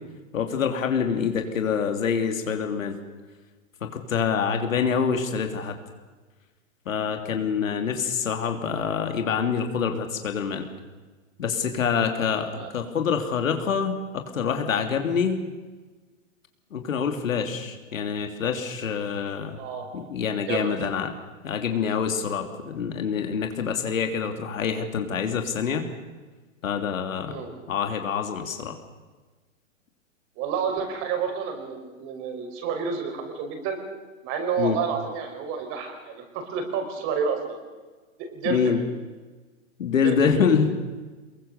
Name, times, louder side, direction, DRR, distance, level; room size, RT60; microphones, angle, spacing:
voice 1, 0.3-3.0 3.8-5.7 6.9-10.7 11.4-15.4 16.7-19.6 19.9-21.1 21.4-25.8 26.6-27.4 27.7-28.8 34.6-34.8 38.4-38.8 39.8-40.9, left 6 dB, 75° left, 5 dB, 3.2 m, -26 dB
voice 2, 19.5-19.9 20.5-20.7 27.3-27.5 30.4-33.8 34.2-37.6 38.2-38.8 40.0-40.4, right 6 dB, 30° right, 5 dB, 5.2 m, -30 dB
24.0 x 22.0 x 6.8 m, 1.3 s
hypercardioid pair, 140°, 39 cm